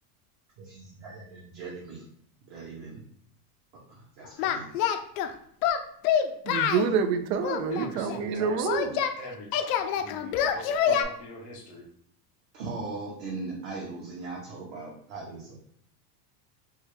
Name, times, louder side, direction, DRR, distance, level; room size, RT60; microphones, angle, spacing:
voice 1, 0.6-2.0 2.5-3.0 3.9-4.7 12.5-15.6, right 3 dB, 40° right, -4 dB, 0.8 m, -39 dB
Singing, 4.4-5.3 5.6-6.9 7.4-9.1 9.5-11.0, left 8 dB, 70° left, 0.5 m, -26 dB
voice 2, 6.5-9.0, right 6 dB, 80° right, 10 dB, 0.6 m, -27 dB
voice 3, 7.7-8.9 9.2-11.9, left 1 dB, 20° left, -3 dB, 0.4 m, -43 dB
3.4 x 2.3 x 3.1 m, 0.63 s
supercardioid pair, 165°, 48 cm